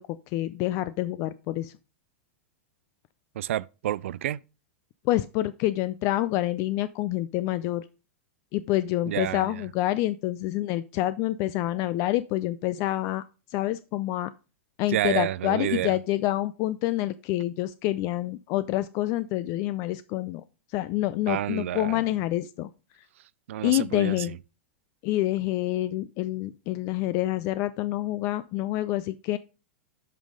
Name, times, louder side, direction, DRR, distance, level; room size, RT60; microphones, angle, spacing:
voice 1, 0.0-1.7 5.0-7.9 8.5-13.2 13.5-14.3 14.8-20.4 20.7-22.7 23.6-24.4 25.0-29.4, left 16 dB, 45° left, 0.4 m, -27 dB
voice 2, 3.4-4.4 9.1-9.6 14.9-16.0 21.3-22.0 23.5-24.3, right 13 dB, 75° right, 0.3 m, -29 dB
11.0 x 5.6 x 3.8 m
hypercardioid pair, 130°, 7 cm